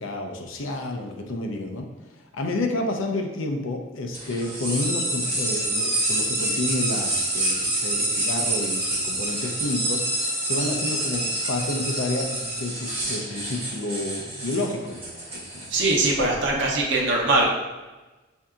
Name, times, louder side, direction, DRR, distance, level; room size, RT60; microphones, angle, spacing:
voice 1, 0.0-1.9 2.3-10.0 10.5-15.6 16.2-16.6, left 2 dB, 80° left, 4 dB, 0.5 m, -30 dB
sound 1, 4.1-16.1, right 1 dB, 10° right, 1.5 m, -27 dB
voice 2, 15.7-17.5, right 2 dB, 60° right, -2 dB, 0.8 m, -21 dB
5.5 x 2.7 x 2.4 m, 1.2 s
head